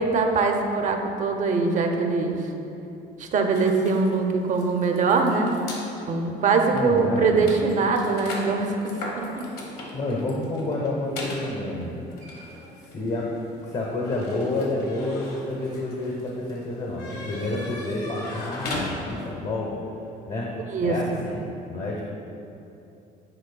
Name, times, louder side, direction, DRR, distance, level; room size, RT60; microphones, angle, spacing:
voice 1, 0.0-2.4 3.2-5.5 6.1-9.5 20.7-21.2, right 4 dB, 45° right, 4 dB, 0.6 m, -23 dB
sound 1, 3.5-5.9 6.6-6.7 7.0-19.4, left 2 dB, 70° left, 1.2 m, -38 dB
voice 2, 6.7-7.4 9.9-12.0 12.8-19.7 20.3-20.5 20.8-21.4 21.7-22.0, left 2 dB, 45° left, -3 dB, 0.9 m, -29 dB
10.0 x 4.5 x 2.2 m, 2.8 s
cardioid pair, 110°, 17 cm